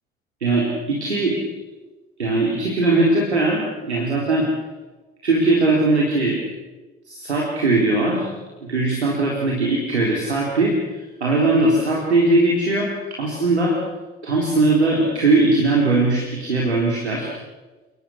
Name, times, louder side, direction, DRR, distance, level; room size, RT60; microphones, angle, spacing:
voice 1, 0.4-1.4 2.2-4.5 5.2-6.4 7.1-8.3 8.6-10.8 11.2-13.8 14.2-17.3, right 2 dB, 85° right, -2 dB, 4.0 m, -19 dB
29.0 x 21.0 x 6.5 m, 1.2 s
figure-of-eight pair, 55°, 33 cm